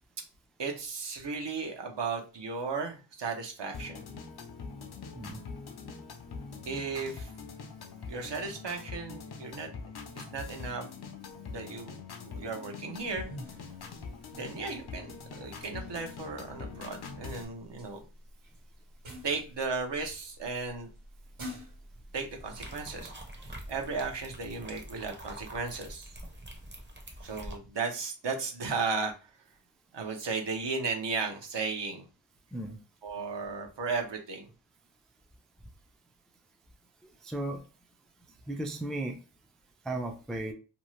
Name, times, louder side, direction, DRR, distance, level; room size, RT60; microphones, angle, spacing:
voice 1, 0.6-4.0 6.7-7.3 8.1-9.7 10.1-10.9 11.4-13.3 14.3-18.0 19.2-20.9 22.1-26.2 27.2-29.1 29.9-32.1 33.0-34.5, right 4 dB, 65° right, 3 dB, 0.8 m, -35 dB
sound 1, 3.7-17.4, left 5 dB, 55° left, 0.6 m, -43 dB
sound 2, 12.9-24.1, equal, 90° right, 1.3 m, -50 dB
sound 3, 22.6-27.6, right 1 dB, 25° right, 0.7 m, -45 dB
voice 2, 37.0-37.6 38.5-39.2 39.8-40.5, right 2 dB, ahead, 3 dB, 0.3 m, -35 dB
2.7 x 2.3 x 3.0 m, 0.34 s
wide cardioid pair, 75°, 46 cm